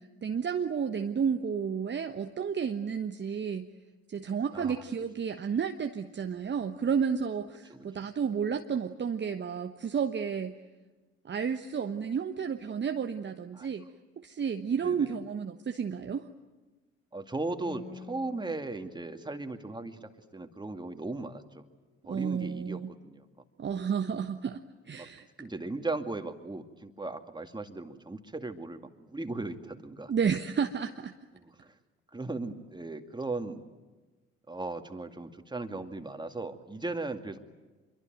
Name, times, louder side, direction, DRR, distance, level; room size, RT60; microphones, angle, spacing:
voice 1, 0.0-3.7 4.1-10.6 11.2-13.9 14.2-16.3 22.1-22.9 23.6-25.5 30.1-31.1, right 6 dB, 35° right, 7 dB, 1.2 m, -31 dB
voice 2, 4.5-4.8 7.7-7.8 13.5-13.7 14.8-15.1 17.1-21.6 22.1-23.2 25.0-25.1 25.4-30.1 31.3-31.7 32.1-33.6 34.5-37.4, right 2 dB, 15° right, 7 dB, 2.3 m, -37 dB
Acoustic guitar, 17.6-21.3, left 5 dB, 75° left, 4.2 m, -51 dB
26.5 x 23.5 x 9.2 m, 1.2 s
figure-of-eight pair, 45°, 33 cm